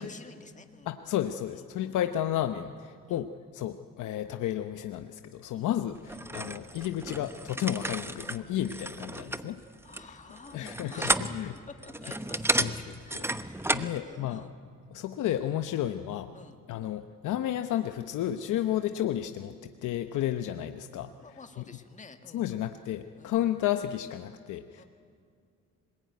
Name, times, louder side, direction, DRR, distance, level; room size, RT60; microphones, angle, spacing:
voice 1, 0.0-0.9 1.5-1.6 3.1-3.2 5.5-5.9 9.8-11.2 11.8-14.5 15.7-15.9 16.3-16.6 18.6-18.7 21.2-22.5 23.1-23.4 24.7-24.8, left 4 dB, 25° left, 6 dB, 1.9 m, -51 dB
voice 2, 0.9-9.6 10.5-11.5 12.6-12.7 13.1-13.3 13.7-14.5 14.9-16.3 16.7-21.1 22.3-24.8, left 11 dB, 80° left, 8 dB, 0.9 m, -32 dB
sound 1, 6.1-14.0, right 1 dB, 10° right, 1.0 m, -33 dB
25.5 x 20.5 x 9.5 m, 2.3 s
cardioid pair, 90°, 30 cm